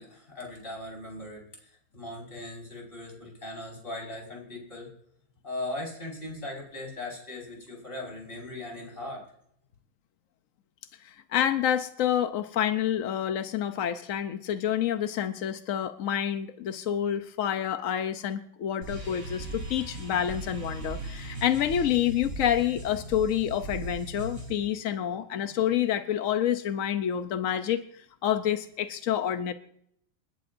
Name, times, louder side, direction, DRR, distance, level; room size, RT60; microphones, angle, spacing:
voice 1, 0.0-4.9 5.4-9.2, left 2 dB, 25° left, -2 dB, 5.4 m, -39 dB
voice 2, 11.0-29.5, left 10 dB, 70° left, 9 dB, 0.7 m, -28 dB
sound 1, 18.8-24.5, right 2 dB, 30° right, 3.8 m, -38 dB
28.5 x 11.5 x 2.6 m, 0.69 s
omnidirectional pair, 2.2 m